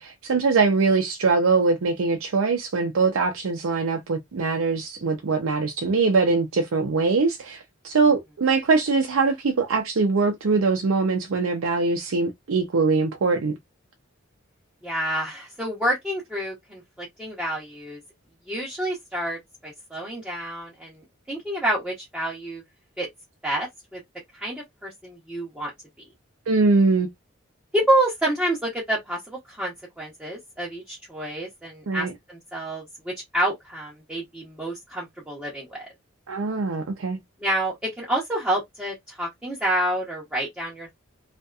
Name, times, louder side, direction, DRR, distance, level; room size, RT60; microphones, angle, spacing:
voice 1, 0.0-13.6 26.5-27.1 31.9-32.1 36.3-37.2, right 4 dB, 85° right, 0.5 m, -22 dB
voice 2, 14.8-18.0 18.5-21.0 21.3-22.6 23.0-23.1 23.4-24.0 24.3-25.7 27.7-35.9 37.4-40.9, right 1 dB, 5° right, 0.8 m, -28 dB
2.7 x 2.5 x 2.2 m
head